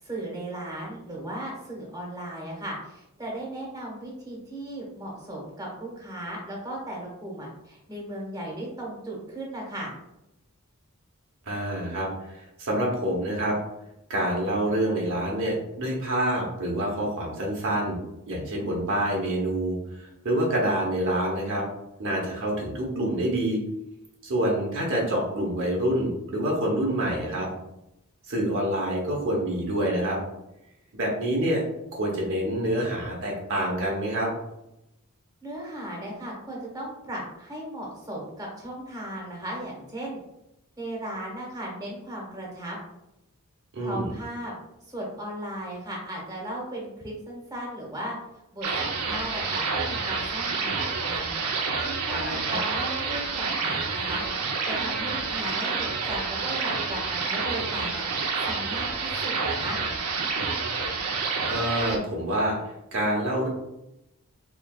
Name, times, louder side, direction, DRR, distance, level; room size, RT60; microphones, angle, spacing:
voice 1, 0.0-9.9 35.4-40.2 40.8-42.8 43.8-44.5 44.9-48.2 48.5-58.0 58.4-59.8, right 1 dB, 15° right, -3 dB, 1.1 m, -36 dB
voice 2, 11.5-13.6 14.1-18.0 18.3-21.6 22.0-23.6 24.2-27.5 28.3-30.2 30.9-31.6 31.9-34.3 43.7-44.1 52.1-52.6 61.5-63.5, right 1 dB, 60° right, -2 dB, 0.9 m, -27 dB
sound 1, 48.6-62.0, right 4 dB, 90° right, 0.6 m, -28 dB
4.5 x 3.1 x 2.3 m, 0.87 s
head